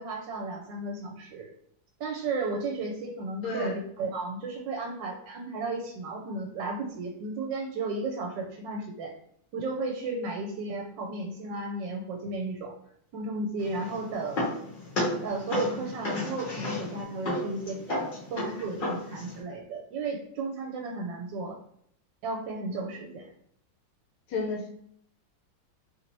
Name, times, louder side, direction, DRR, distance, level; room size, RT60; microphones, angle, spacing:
voice 1, 0.0-1.5 2.0-9.1 9.5-12.7 13.1-14.4 15.2-18.0 18.3-21.6 22.2-23.3, right 3 dB, 80° right, 1 dB, 1.2 m, -34 dB
voice 2, 3.4-3.7 24.3-24.7, left 3 dB, 80° left, 0 dB, 1.3 m, -31 dB
sound 1, 13.6-19.4, left 1 dB, 50° left, 0.6 m, -33 dB
3.2 x 2.6 x 2.9 m, 0.67 s
omnidirectional pair, 2.0 m